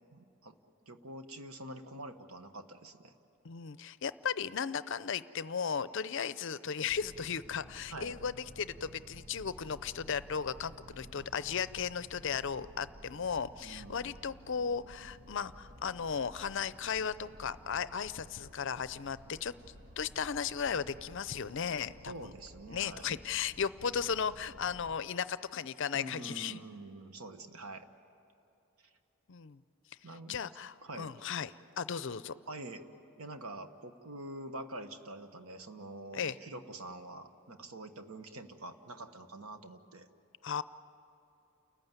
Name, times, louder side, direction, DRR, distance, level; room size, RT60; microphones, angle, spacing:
voice 1, 0.1-0.6 0.9-3.2 7.9-8.2 13.6-14.2 22.1-23.3 25.9-27.9 30.0-30.4 30.8-31.1 32.5-32.8 33.2-40.1, right 1 dB, 75° right, 8 dB, 1.2 m, -46 dB
voice 2, 3.4-19.5 20.0-22.3 22.7-26.6 29.3-29.6 30.3-31.5 31.8-32.3 36.1-36.4 40.4-40.6, left 7 dB, 55° left, 15 dB, 0.5 m, -36 dB
sound 1, 6.9-25.0, equal, 35° right, 1.0 m, -54 dB
29.5 x 14.5 x 9.5 m, 2.8 s
head